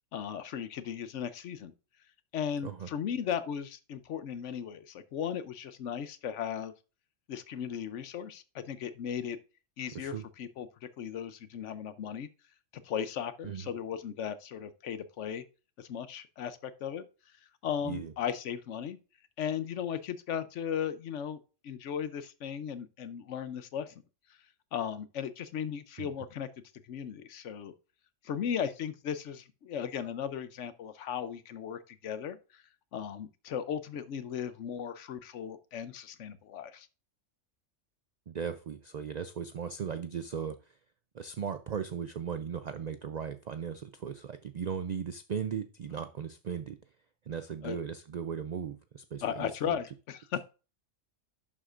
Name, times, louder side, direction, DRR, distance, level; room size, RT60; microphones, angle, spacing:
voice 1, 0.1-1.7 2.3-6.7 7.3-9.4 9.8-12.3 12.7-15.4 15.8-17.0 17.6-19.0 19.4-21.4 21.6-24.0 24.7-26.5 26.8-27.7 28.2-32.6 32.9-36.9 47.6-47.8 49.2-50.5, left 8 dB, 70° left, 1.0 m, -36 dB
voice 2, 9.9-10.3 13.4-13.7 17.8-18.1 26.0-26.1 38.3-40.8 41.1-46.8 47.3-49.8, right 7 dB, 65° right, 0.4 m, -37 dB
11.5 x 7.3 x 2.5 m
omnidirectional pair, 1.3 m